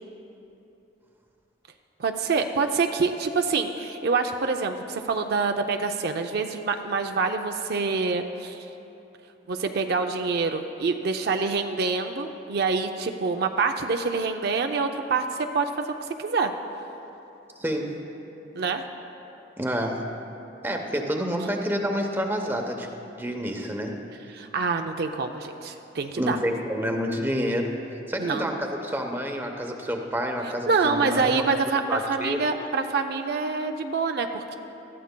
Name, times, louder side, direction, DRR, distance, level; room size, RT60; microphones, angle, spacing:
voice 1, 2.0-8.7 9.5-16.5 18.6-18.8 24.3-26.4 28.2-28.5 30.7-34.6, right 4 dB, 60° right, 5 dB, 0.5 m, -26 dB
voice 2, 17.6-18.0 19.6-20.1 20.6-22.9 23.2-24.0 26.2-27.7 28.1-31.4 31.9-32.4, equal, 10° right, 3 dB, 0.8 m, -28 dB
19.5 x 13.5 x 2.2 m, 3.0 s
head